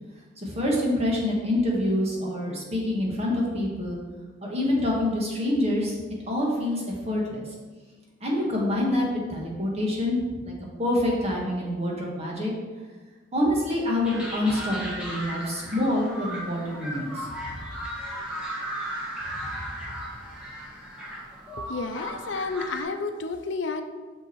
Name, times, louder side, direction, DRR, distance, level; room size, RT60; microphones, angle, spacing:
voice 1, 0.4-4.0 4.4-6.0 6.3-7.4 8.2-10.5 10.8-12.5 13.3-17.5, left 1 dB, 35° right, -3 dB, 1.8 m, -26 dB
sound 1, 14.0-22.8, equal, 5° right, 1.6 m, -36 dB
voice 2, 21.6-23.8, left 4 dB, 80° left, 7 dB, 0.6 m, -31 dB
6.4 x 5.8 x 4.7 m, 1.3 s
head